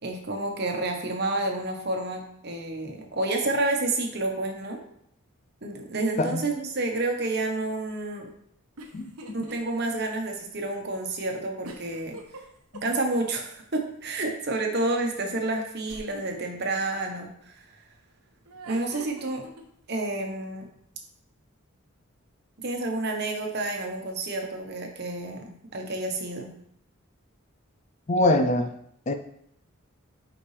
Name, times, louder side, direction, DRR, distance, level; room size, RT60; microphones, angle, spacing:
voice 1, 0.0-4.8 5.6-8.3 9.3-12.2 12.8-17.8 18.7-19.4 19.9-20.7 22.6-26.5, right 2 dB, 45° right, 2 dB, 1.1 m, -29 dB
sound 1, 8.8-9.6 10.0-10.1 11.6-13.4 15.9-16.4 18.4-19.6, right 2 dB, 90° right, 1.1 m, -43 dB
voice 2, 28.1-28.7 29.1-29.2, left 1 dB, 30° left, 7 dB, 0.4 m, -23 dB
8.3 x 5.2 x 3.3 m, 0.71 s
head